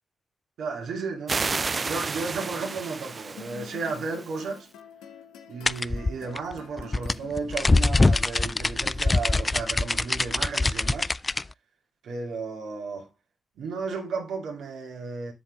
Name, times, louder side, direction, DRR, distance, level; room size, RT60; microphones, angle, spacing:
voice 1, 0.6-4.7 5.5-11.1 12.0-13.1 13.6-15.3, right 4 dB, 75° right, 2.4 m, -34 dB
sound 1, 1.3-4.6, right 4 dB, 45° right, 0.3 m, -32 dB
sound 2, 3.4-8.8, left 7 dB, 85° left, 1.2 m, -47 dB
sound 3, 5.7-11.4, left 3 dB, 30° left, 0.3 m, -23 dB
7.5 x 7.5 x 3.6 m
hypercardioid pair, 40°, 0 cm